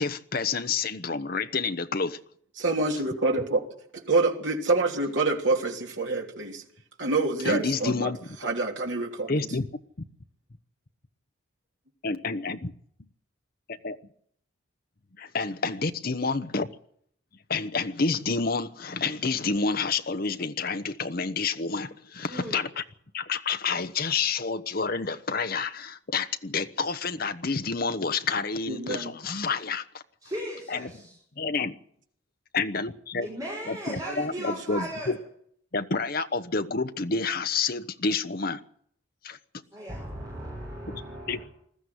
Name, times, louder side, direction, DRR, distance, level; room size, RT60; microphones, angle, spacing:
voice 1, 0.0-2.2 7.4-8.2 9.3-9.7 12.0-12.7 13.7-14.0 15.2-16.7 17.5-22.8 23.1-29.8 30.7-30.9 31.4-31.7 32.5-33.3 33.7-35.2 35.7-38.6 39.2-39.4 40.9-41.0 41.3-41.4, left 4 dB, 50° left, 9 dB, 0.9 m, -29 dB
voice 2, 2.6-3.7 3.9-6.6 7.0-8.1 8.4-9.5 28.7-29.1 34.4-34.5, right 3 dB, 70° right, 1 dB, 3.2 m, -27 dB
voice 3, 22.3-22.6 30.2-31.1 33.2-35.1 39.7-41.4, equal, 20° right, -4 dB, 6.4 m, -37 dB
20.5 x 14.0 x 9.7 m, 0.68 s
head